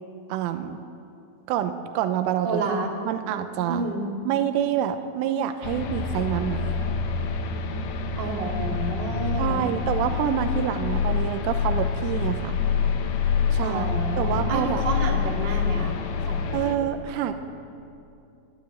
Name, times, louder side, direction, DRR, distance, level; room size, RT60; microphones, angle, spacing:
voice 1, 0.3-0.8 1.5-2.6 3.1-3.9 4.3-6.9 9.4-12.6 13.5-13.9 14.2-14.8 16.5-17.3, right 10 dB, 85° right, 7 dB, 3.4 m, -27 dB
voice 2, 2.4-2.9 3.7-4.2 8.2-9.7 13.6-16.0 16.3-16.8, right 2 dB, 35° right, -1 dB, 1.9 m, -30 dB
sound 1, 5.6-16.7, left 5 dB, 85° left, 1.8 m, -26 dB
29.0 x 12.0 x 9.1 m, 2.6 s
omnidirectional pair, 5.6 m